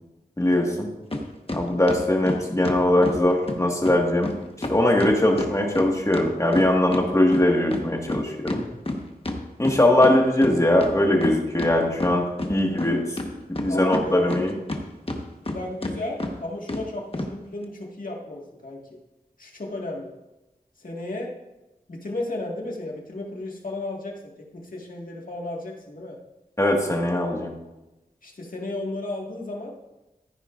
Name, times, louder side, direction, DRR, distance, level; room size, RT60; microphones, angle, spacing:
voice 1, 0.4-0.9 1.5-4.3 4.7-8.6 9.6-13.0 13.5-14.5 26.6-27.5, left 1 dB, 20° left, 0 dB, 1.8 m, -21 dB
sound 1, 1.1-1.2 1.5-3.2 3.5-3.6 3.8-4.0 4.2-4.3 4.6-7.0 7.3-10.1 10.4-10.5 10.8-11.7 12.0-12.9 13.2-14.8 15.1-15.5 15.8-15.9 16.2-16.3 16.7-16.8 17.1-17.3, left 1 dB, 35° left, 1.3 m, -29 dB
voice 2, 13.7-14.5 15.4-18.8 19.4-20.1 20.8-21.3 21.9-24.1 24.5-26.2 28.2-29.7, left 2 dB, 60° left, -2 dB, 1.9 m, -34 dB
14.5 x 9.8 x 2.6 m, 1.0 s
wide cardioid pair, 70°, 16 cm